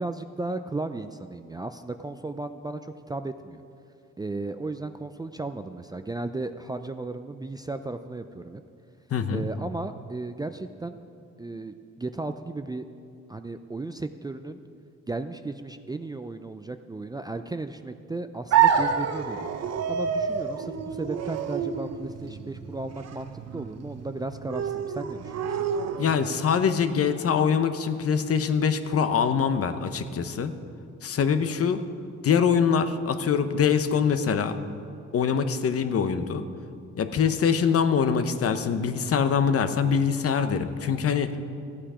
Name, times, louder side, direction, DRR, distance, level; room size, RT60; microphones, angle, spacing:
voice 1, 0.0-3.6 4.2-8.6 9.3-11.0 11.4-12.9 13.3-14.6 15.1-19.5 19.9-25.7, right 2 dB, 15° right, 8 dB, 0.4 m, -35 dB
voice 2, 9.1-9.5 26.0-30.5 31.0-31.8 32.2-34.6 35.1-36.4 37.0-41.4, left 6 dB, 50° left, 10 dB, 0.8 m, -24 dB
sound 1, 18.5-26.5, right 7 dB, 60° right, 0.8 m, -28 dB
14.5 x 8.7 x 4.9 m, 2.5 s
cardioid pair, 90°, 30 cm